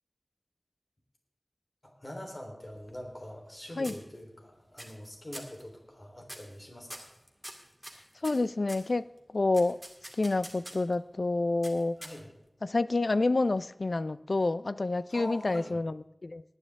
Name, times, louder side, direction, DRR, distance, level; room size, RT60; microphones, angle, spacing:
voice 1, 1.8-7.1 12.0-12.3 15.1-15.7, equal, 40° left, 3.7 m, -44 dB
sound 1, 2.6-3.5 3.8-4.4 4.8-5.1 5.3-5.6 6.2-6.6 6.9-8.9 9.5-10.9 11.6-12.5, equal, 5° left, 2.1 m, -46 dB
voice 2, 8.2-9.0 9.3-9.8 10.2-12.0 12.6-16.4, left 2 dB, 65° left, 0.4 m, -28 dB
19.5 x 9.9 x 3.6 m
wide cardioid pair, 60°, 0 cm